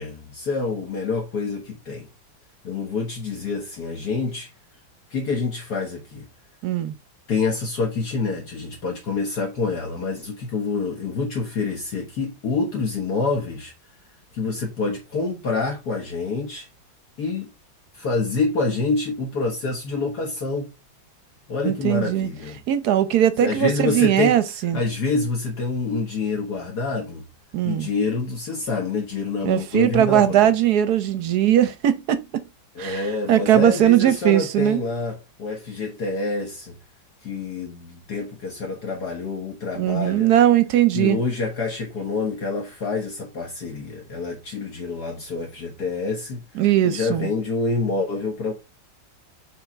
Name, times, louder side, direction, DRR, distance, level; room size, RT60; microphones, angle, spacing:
voice 1, 0.0-2.1 2.6-4.5 5.1-6.3 7.3-13.7 14.3-16.7 17.2-17.5 17.9-20.7 21.5-22.6 23.4-24.4 24.7-27.3 27.6-30.5 32.8-36.8 37.2-40.3 40.9-46.4 46.8-48.5, left 4 dB, 55° left, 1.9 m, -27 dB
voice 2, 6.6-6.9 21.6-22.3 22.7-24.8 27.5-27.9 29.4-32.4 32.8-34.8 39.8-41.2 46.5-47.3, right 11 dB, 65° right, 1.1 m, -19 dB
7.1 x 3.8 x 4.4 m
omnidirectional pair, 2.1 m